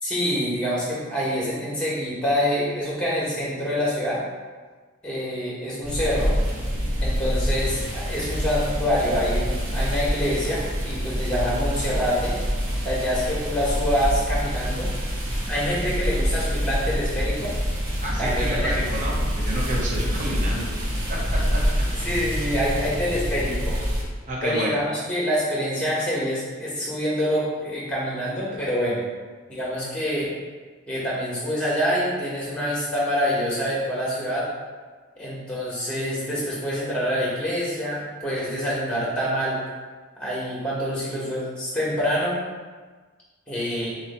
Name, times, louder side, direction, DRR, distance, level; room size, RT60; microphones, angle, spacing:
voice 1, 0.0-4.2 5.0-6.3 7.0-12.4 12.8-14.9 15.5-17.5 18.2-18.7 21.9-23.8 24.4-29.0 29.5-30.3 30.9-34.5 35.2-39.6 40.2-42.4 43.5-43.9, equal, 5° left, -7 dB, 1.2 m, -26 dB
sound 1, 5.8-24.0, equal, 65° right, 1.1 m, -26 dB
voice 2, 18.0-20.6 21.1-21.6 24.3-24.7, right 1 dB, 35° right, -3 dB, 0.7 m, -29 dB
3.9 x 3.0 x 4.2 m, 1.4 s
head